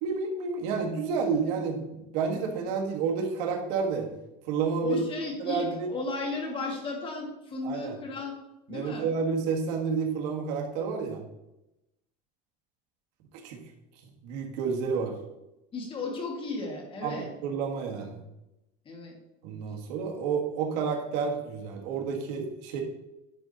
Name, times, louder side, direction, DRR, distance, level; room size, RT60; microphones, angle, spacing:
voice 1, 0.0-4.1 4.5-5.0 5.4-5.9 7.6-8.0 8.7-11.2 13.4-13.6 14.2-15.1 17.0-18.2 19.4-22.8, right 5 dB, 75° right, 2 dB, 1.6 m, -30 dB
voice 2, 4.8-8.3 8.7-9.1 15.7-17.3 18.9-19.2, left 3 dB, 25° left, 1 dB, 1.8 m, -34 dB
11.0 x 3.8 x 4.0 m, 0.93 s
cardioid pair, 150°, 21 cm